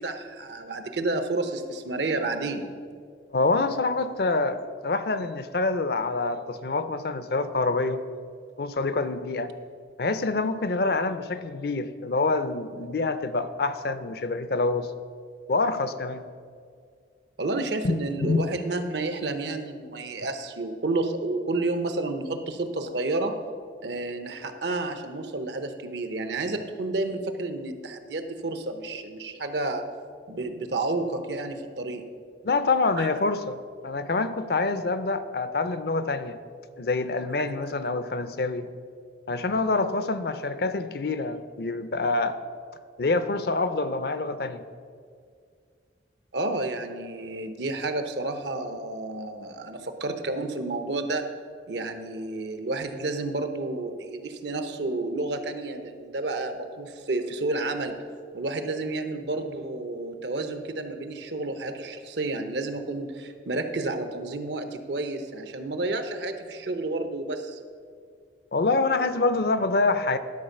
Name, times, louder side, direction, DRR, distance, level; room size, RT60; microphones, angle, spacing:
voice 1, 0.0-2.7 17.4-23.4 23.8-29.8 30.3-32.0 33.0-33.1 46.3-51.3 51.7-57.9 58.3-67.6, right 2 dB, 70° right, 8 dB, 0.8 m, -30 dB
voice 2, 3.3-8.0 8.6-9.5 10.0-14.9 15.5-16.2 17.8-18.4 32.4-33.6 33.8-36.4 36.8-38.7 39.3-42.4 43.0-44.6 68.5-70.2, left 3 dB, 55° left, 11 dB, 0.5 m, -26 dB
12.0 x 4.4 x 6.6 m, 2.1 s
head